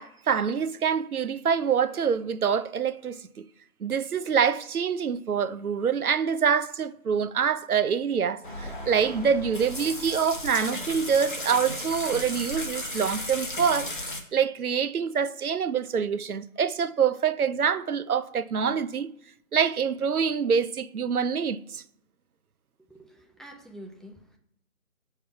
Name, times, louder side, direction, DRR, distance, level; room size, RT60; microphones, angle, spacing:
voice 1, 0.0-3.5 3.8-13.9 14.3-19.1 19.5-21.8, right 7 dB, 80° right, 0.6 m, -26 dB
sound 1, 8.4-14.2, left 1 dB, 35° left, 0.9 m, -35 dB
voice 2, 22.8-24.4, equal, ahead, 0.4 m, -47 dB
7.2 x 3.4 x 4.6 m
figure-of-eight pair, 155°, 43 cm